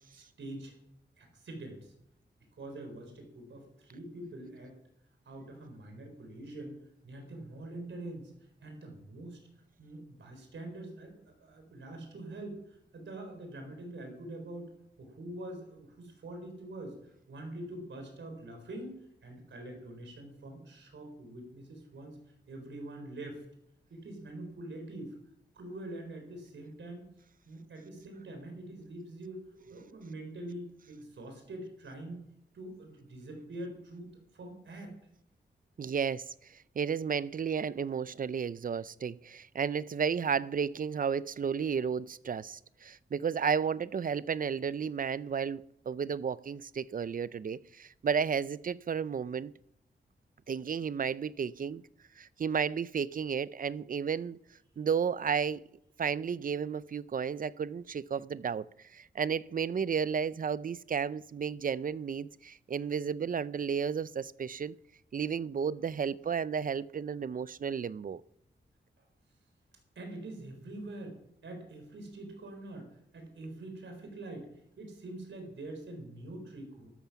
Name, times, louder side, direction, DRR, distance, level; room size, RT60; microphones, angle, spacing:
voice 1, 0.1-0.8 1.2-1.9 2.6-4.8 5.2-8.3 8.6-9.4 9.8-14.7 15.0-22.2 22.5-23.4 23.9-25.2 25.5-27.1 27.5-29.4 29.7-32.2 32.5-34.9 69.0-69.1 69.9-71.2 71.4-74.5 74.8-76.9, right 1 dB, 80° right, 4.3 m, -44 dB
voice 2, 35.8-36.3 36.8-49.5 50.5-51.8 52.2-54.4 54.8-55.6 56.0-58.6 58.9-64.7 65.1-68.2, right 6 dB, 45° right, 0.5 m, -33 dB
13.0 x 13.0 x 5.9 m
wide cardioid pair, 90°, 19 cm